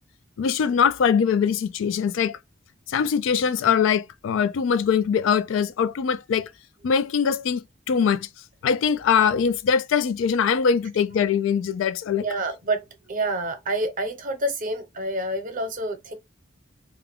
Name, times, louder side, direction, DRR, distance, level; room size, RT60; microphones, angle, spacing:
voice 1, 0.4-2.4 2.9-6.5 6.8-8.3 8.6-12.3, left 7 dB, 75° left, 0.3 m, -22 dB
voice 2, 12.2-16.1, right 1 dB, 45° right, 0.7 m, -28 dB
2.5 x 2.2 x 3.4 m
head